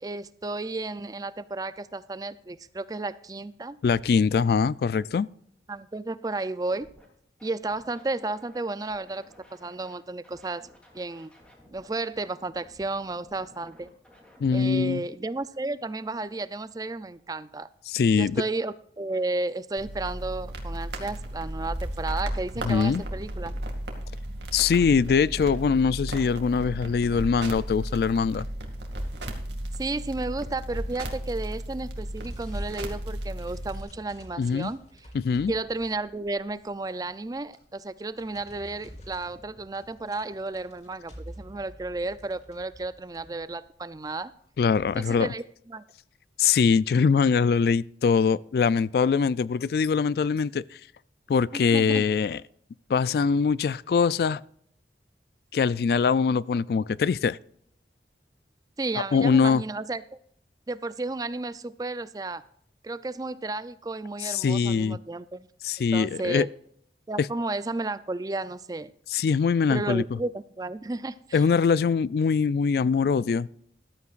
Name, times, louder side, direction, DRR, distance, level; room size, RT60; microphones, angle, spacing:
voice 1, 0.0-3.8 5.7-6.9 7.4-9.2 9.5-10.7 10.9-11.3 11.7-13.9 14.5-17.7 18.2-23.6 29.8-34.8 35.5-44.3 45.0-45.8 51.5-52.1 58.8-60.0 60.7-62.4 62.8-65.5 65.9-66.5 67.1-68.9 69.7-71.5, right 2 dB, 20° right, 0.4 m, -33 dB
voice 2, 3.8-5.3 14.4-15.0 17.9-18.4 22.6-23.0 24.5-28.5 34.4-34.7 35.1-35.5 44.6-45.3 46.4-50.6 51.3-52.4 52.9-54.4 55.5-57.4 59.0-59.6 64.2-65.0 65.6-66.5 67.2-67.3 69.1-70.0 71.3-73.5, left 5 dB, 60° left, 0.3 m, -23 dB
Scratching (performance technique), 6.7-7.1 7.4-9.9 10.2-14.4, left 1 dB, 5° left, 3.0 m, -55 dB
sound 1, 19.8-33.8, right 1 dB, 80° right, 2.2 m, -34 dB
sound 2, 29.0-31.4 31.8-44.8, equal, 40° left, 2.8 m, -50 dB
14.0 x 13.0 x 2.5 m
head